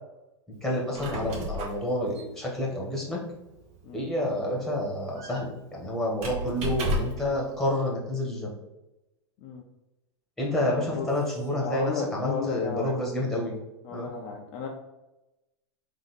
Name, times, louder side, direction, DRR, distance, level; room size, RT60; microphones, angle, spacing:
voice 1, 0.6-3.2 3.9-8.5 10.4-13.6 13.9-14.1, left 1 dB, ahead, -3 dB, 1.6 m, -29 dB
Squeak, 0.7-7.3, equal, 45° right, 1.3 m, -35 dB
voice 2, 11.6-12.9 13.8-14.7, left 5 dB, 45° left, 0 dB, 0.8 m, -33 dB
3.9 x 2.9 x 4.2 m, 0.97 s
hypercardioid pair, 110°, 15 cm